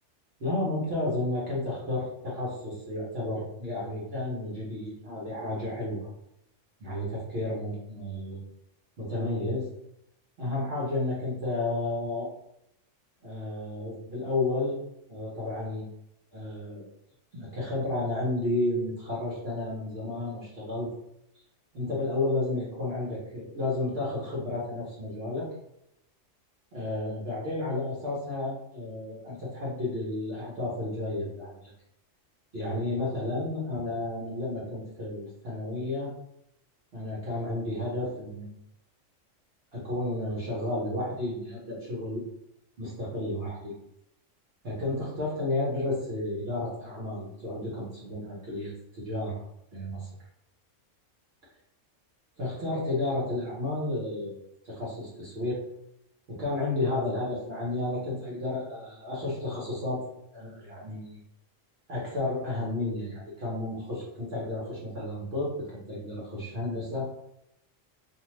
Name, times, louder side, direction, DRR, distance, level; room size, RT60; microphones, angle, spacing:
voice 1, 0.4-6.1 6.8-8.4 9.0-9.7 10.4-12.3 13.2-14.8 15.1-15.9 16.3-16.8 17.3-20.9 21.7-25.5 26.7-31.7 32.5-36.1 36.9-38.5 39.7-42.2 42.8-43.8 44.6-49.4 49.7-50.1 52.4-54.4 54.6-55.6 56.3-60.0 60.3-61.2 61.9-67.1, left 2 dB, 55° right, -6 dB, 1.0 m, -32 dB
2.7 x 2.2 x 3.0 m, 0.79 s
omnidirectional pair, 1.3 m